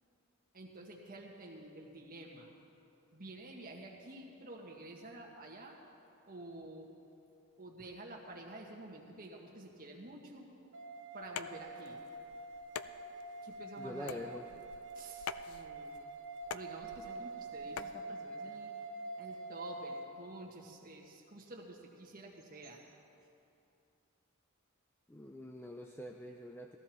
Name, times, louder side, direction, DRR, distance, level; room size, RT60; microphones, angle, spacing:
voice 1, 0.5-2.5 3.1-5.8 6.3-6.9 7.6-10.5 11.1-12.0 13.4-14.2 15.0-16.2 16.5-18.8 19.2-22.8, right 2 dB, 45° right, 0 dB, 1.7 m, -50 dB
sound 1, 10.7-20.1, right 2 dB, 60° right, 1.2 m, -46 dB
sound 2, 11.2-18.0, left 8 dB, 85° left, 0.4 m, -47 dB
voice 2, 13.8-14.5 25.1-26.8, left 1 dB, 10° left, 3 dB, 0.4 m, -45 dB
19.0 x 14.5 x 3.1 m, 2.7 s
head